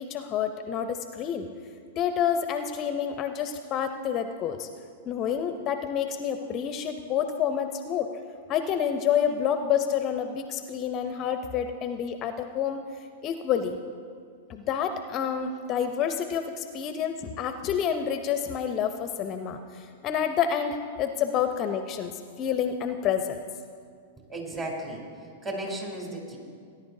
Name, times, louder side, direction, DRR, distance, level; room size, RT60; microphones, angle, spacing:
voice 1, 0.0-1.5 2.0-4.7 5.0-8.1 8.5-12.8 13.2-13.8 14.5-23.4, left 8 dB, 35° left, 8 dB, 0.6 m, -28 dB
voice 2, 24.3-25.0 25.4-26.4, right 1 dB, 25° right, -1 dB, 3.2 m, -34 dB
18.0 x 10.5 x 2.7 m, 2.2 s
hypercardioid pair, 105°, 0 cm